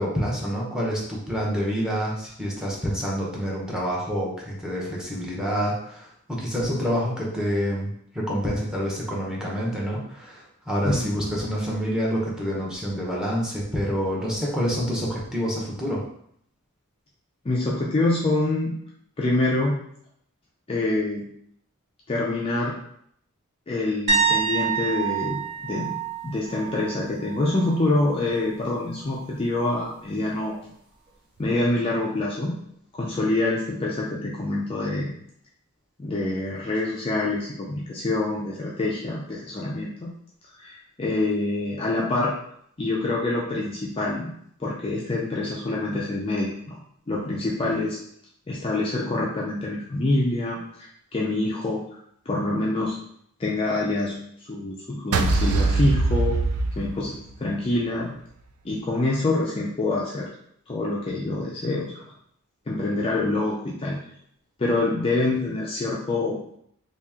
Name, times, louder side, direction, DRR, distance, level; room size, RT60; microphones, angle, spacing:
voice 1, 0.0-16.0, equal, 5° right, -4 dB, 0.8 m, -27 dB
voice 2, 10.8-11.3 17.4-18.8 19.2-19.8 20.7-21.2 22.1-22.8 23.7-26.0 26.2-30.6 31.4-32.5 33.0-35.1 36.0-40.1 40.6-42.3 42.8-44.3 44.6-46.8 47.1-48.0 48.5-51.8 52.3-52.9 53.4-54.2 54.4-56.4 56.8-58.2 58.6-60.3 60.7-62.0 62.7-64.0 64.6-66.4, left 2 dB, 25° left, -4 dB, 0.4 m, -26 dB
sound 1, 24.1-27.8 28.1-28.5 31.4-31.5, right 5 dB, 45° right, 0.8 m, -27 dB
sound 2, 55.1-57.5, right 3 dB, 80° right, 0.4 m, -22 dB
3.0 x 2.8 x 3.5 m, 0.69 s
head